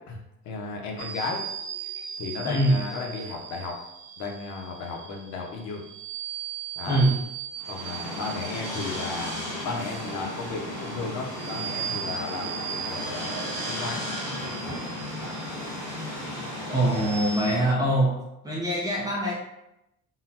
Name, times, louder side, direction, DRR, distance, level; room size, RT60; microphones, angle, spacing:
voice 1, 0.4-1.4 2.2-3.7 4.2-5.8 6.8-7.0 7.7-13.4 13.6-14.1, left 4 dB, 70° left, 1 dB, 0.7 m, -34 dB
sound 1, 1.0-17.6, right 8 dB, 85° right, 0.5 m, -39 dB
voice 2, 2.4-2.8 6.9-7.1 16.7-18.2 18.4-19.3, right 1 dB, 15° right, -4 dB, 0.5 m, -23 dB
sound 2, 7.6-17.7, left 1 dB, 10° left, 0.9 m, -35 dB
3.7 x 2.1 x 2.8 m, 0.85 s
cardioid pair, 175°, 29 cm